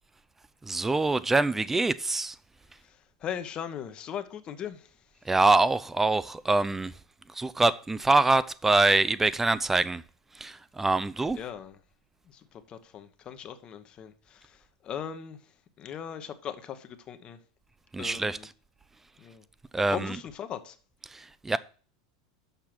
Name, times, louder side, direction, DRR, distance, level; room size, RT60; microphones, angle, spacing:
voice 1, 0.6-2.3 5.3-6.9 7.4-10.0 10.4-11.4 17.9-18.4 19.7-20.2 21.1-21.6, right 3 dB, 10° right, 0.5 m, -24 dB
voice 2, 2.8-5.0 11.4-11.8 12.3-15.4 15.8-17.4 18.0-18.5 19.2-19.4 19.9-20.8, left 8 dB, 35° left, 0.9 m, -39 dB
6.8 x 5.6 x 5.9 m
hypercardioid pair, 95°, 3 cm